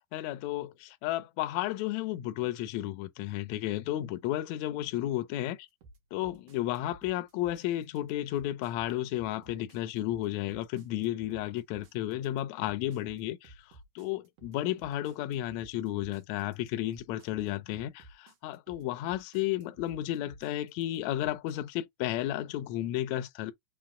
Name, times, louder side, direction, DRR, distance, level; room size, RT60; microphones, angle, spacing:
voice 1, 0.1-5.7 6.1-23.5, left 14 dB, 80° left, 1.7 m, -33 dB
sound 1, 5.8-21.6, right 2 dB, 75° right, 2.7 m, -55 dB
5.7 x 2.0 x 3.6 m
omnidirectional pair, 3.7 m